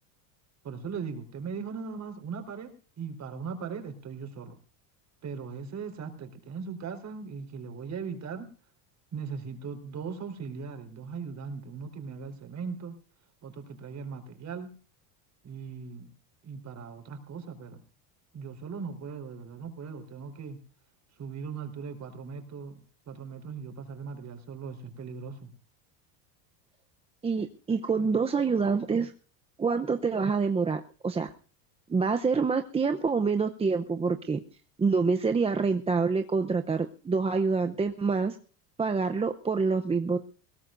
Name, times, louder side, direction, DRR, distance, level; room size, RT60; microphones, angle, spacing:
voice 1, 0.6-4.6 5.2-8.5 9.1-13.0 13.4-14.7 15.4-16.1 16.4-17.8 18.3-20.6 21.2-22.8 23.1-25.5, right 5 dB, 35° right, 5 dB, 4.1 m, -39 dB
voice 2, 27.2-29.1 29.6-31.3 31.9-34.4 34.8-38.4 38.8-40.2, right 4 dB, 10° right, 6 dB, 0.7 m, -26 dB
21.0 x 17.5 x 2.6 m, 0.39 s
supercardioid pair, 135°, 48 cm